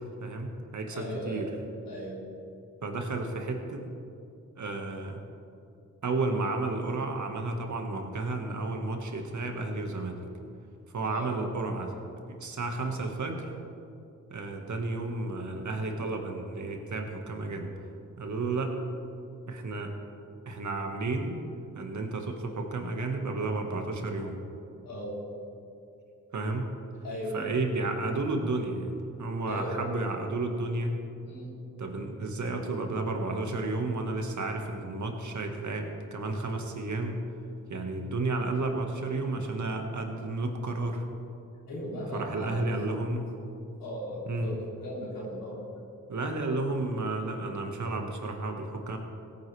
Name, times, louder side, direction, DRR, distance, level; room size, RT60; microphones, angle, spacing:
voice 1, 0.2-1.5 2.8-3.9 4.6-5.2 6.0-10.2 10.9-11.9 12.3-13.5 14.3-17.7 18.2-18.8 19.5-19.9 20.5-21.4 21.7-24.4 26.3-26.8 27.3-31.0 31.8-37.2 37.7-41.1 42.1-43.3 44.3-44.5 46.1-49.0, right 2 dB, 60° right, 3 dB, 1.7 m, -32 dB
voice 2, 0.9-1.4 1.8-2.2 11.0-11.3 24.8-25.2 27.0-27.5 29.4-29.9 31.3-31.6 41.7-42.6 43.8-45.6, equal, 85° left, -6 dB, 3.2 m, -37 dB
17.0 x 9.7 x 3.4 m, 2.6 s
supercardioid pair, 45°, 34 cm